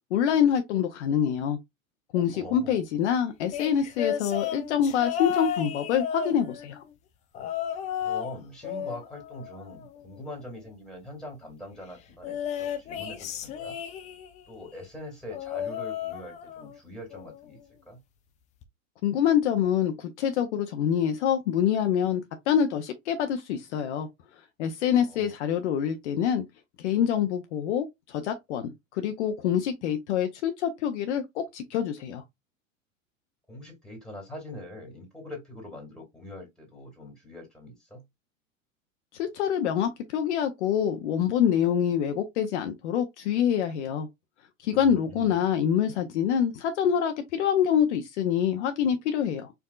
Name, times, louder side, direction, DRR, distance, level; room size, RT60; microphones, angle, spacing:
voice 1, 0.1-1.6 2.1-6.8 19.0-24.1 24.6-26.4 26.8-32.2 39.2-44.1 44.6-49.5, left 9 dB, 60° left, 0.7 m, -26 dB
voice 2, 2.3-2.8 8.0-13.8 14.5-18.0 25.0-25.3 33.5-38.0 44.7-45.4, left 1 dB, ahead, 2.1 m, -43 dB
sound 1, 3.5-6.8 7.3-8.3 8.6-10.2 12.2-14.4 15.3-16.8 17.1-17.5 18.6-18.7, left 9 dB, 20° left, 0.4 m, -33 dB
4.5 x 2.6 x 2.3 m
hypercardioid pair, 95°, 40 cm